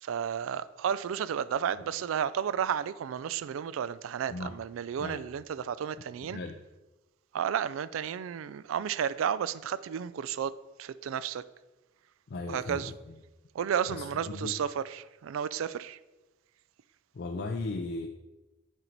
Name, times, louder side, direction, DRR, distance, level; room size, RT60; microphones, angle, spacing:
voice 1, 0.0-6.4 7.3-11.4 12.5-12.9 13.5-16.0, right 8 dB, 90° right, 0.3 m, -32 dB
voice 2, 4.3-4.6 5.0-5.3 6.2-6.6 12.3-13.2 13.9-14.6 17.1-18.1, left 3 dB, 55° left, 0.4 m, -37 dB
8.9 x 4.4 x 4.0 m
head